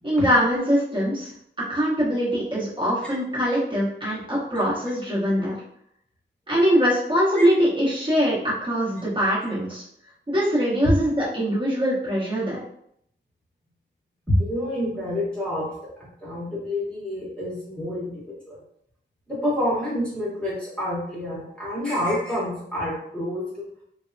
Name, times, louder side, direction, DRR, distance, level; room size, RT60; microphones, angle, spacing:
voice 1, 0.0-1.3 1.6-5.6 6.5-9.8 10.3-12.6, equal, 25° right, -8 dB, 1.0 m, -22 dB
voice 2, 14.3-15.7 16.2-18.6 19.3-23.7, left 1 dB, 5° left, -7 dB, 1.0 m, -27 dB
3.3 x 2.1 x 2.6 m, 0.70 s
wide cardioid pair, 115°, 20 cm